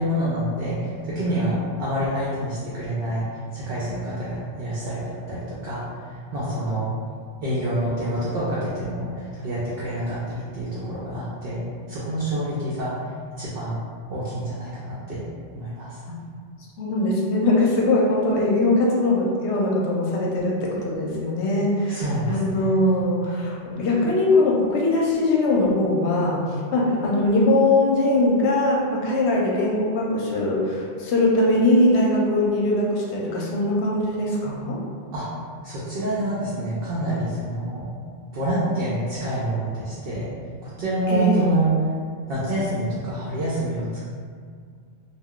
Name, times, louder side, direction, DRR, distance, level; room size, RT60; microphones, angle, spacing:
voice 1, 0.0-3.2 3.5-6.9 7.4-11.6 11.9-12.9 13.4-13.8 14.1-15.2 15.5-16.0 21.9-22.7 35.1-35.2 35.6-37.9 38.3-40.3 40.6-41.7 42.3-44.0, right 1 dB, 60° right, -8 dB, 0.7 m, -27 dB
voice 2, 16.8-26.4 26.7-34.8 41.1-41.5, left 2 dB, 75° left, -3 dB, 0.9 m, -21 dB
2.3 x 2.2 x 3.6 m, 2.1 s
omnidirectional pair, 1.2 m